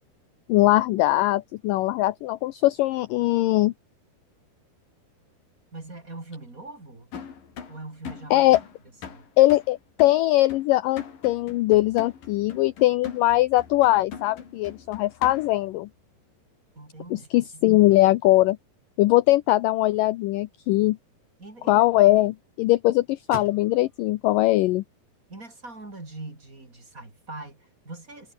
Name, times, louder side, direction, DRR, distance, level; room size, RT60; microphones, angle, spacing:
voice 1, 0.5-3.7 8.3-8.6 9.4-15.9 17.1-18.6 19.0-21.0 21.7-24.8, left 17 dB, 80° left, 2.0 m, -21 dB
voice 2, 5.7-7.1 7.7-8.5 9.1-9.3 16.7-17.7 21.4-21.9 25.3-28.3, right 2 dB, 20° right, 4.2 m, -42 dB
sound 1, 7.1-15.7, left 7 dB, 60° left, 5.0 m, -42 dB
sound 2, 19.8-25.9, right 3 dB, 40° right, 8.3 m, -49 dB
omnidirectional pair, 4.6 m